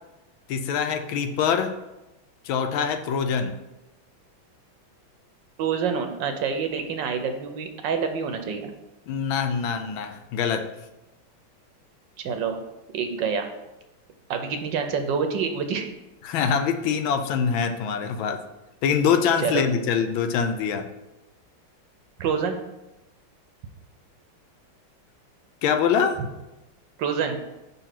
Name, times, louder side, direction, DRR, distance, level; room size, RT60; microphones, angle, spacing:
voice 1, 0.5-1.7 2.4-3.5 9.1-10.6 16.2-18.4 18.8-20.9 25.6-26.2, left 7 dB, 80° left, 8 dB, 1.4 m, -24 dB
voice 2, 5.6-8.7 12.2-12.6 12.9-13.5 14.3-15.9 19.4-19.6 22.2-22.6 27.0-27.4, right 6 dB, 75° right, 6 dB, 1.3 m, -27 dB
5.7 x 4.0 x 5.8 m, 0.98 s
omnidirectional pair, 2.2 m